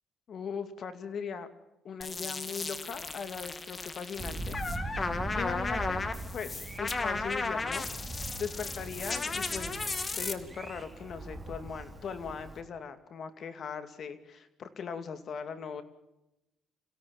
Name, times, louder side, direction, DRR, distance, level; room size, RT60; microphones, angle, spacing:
voice 1, 0.3-1.5 1.8-5.0 5.4-6.0 6.3-7.8 8.4-9.8 10.1-15.8, left 6 dB, 55° left, 9 dB, 2.4 m, -39 dB
sound 1, 2.0-10.3, left 3 dB, 30° left, 2.1 m, -35 dB
Thunder, 4.2-12.6, right 2 dB, 15° right, 3.0 m, -41 dB
27.5 x 17.0 x 7.3 m, 0.94 s
cardioid pair, 100°, 0 cm